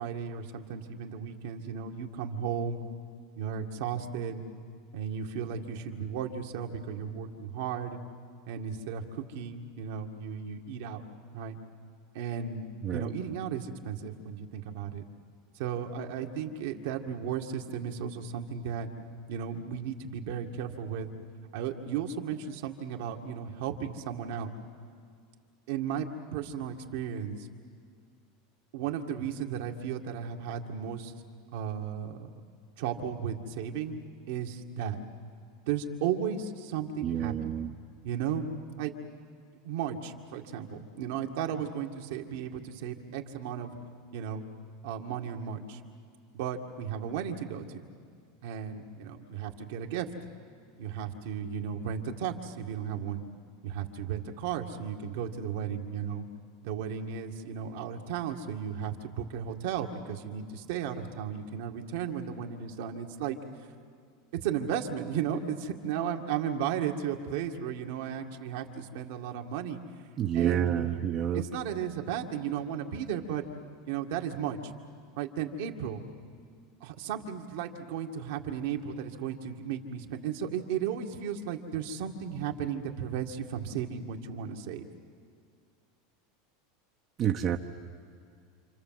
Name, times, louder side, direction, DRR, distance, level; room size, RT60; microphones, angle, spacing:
voice 1, 0.0-2.8 3.4-4.4 4.9-8.0 8.5-11.0 11.3-11.6 12.1-12.6 12.9-15.0 15.6-18.9 19.3-21.1 21.5-24.5 25.7-27.5 28.7-31.1 31.5-32.3 32.8-34.0 34.3-35.0 35.7-37.6 38.0-38.5 38.8-38.9 39.6-43.7 44.1-44.4 44.8-45.8 46.3-47.8 48.4-50.1 50.8-53.2 53.6-56.3 56.6-63.4 64.4-69.8 70.3-73.5 73.9-74.6 75.2-76.0 76.8-84.9, right 8 dB, 70° right, 3 dB, 2.0 m, -35 dB
voice 2, 37.0-37.7 70.2-71.4 87.2-87.6, right 10 dB, 40° right, 4 dB, 1.0 m, -28 dB
28.0 x 26.5 x 7.7 m, 2.3 s
hypercardioid pair, 110°, 0 cm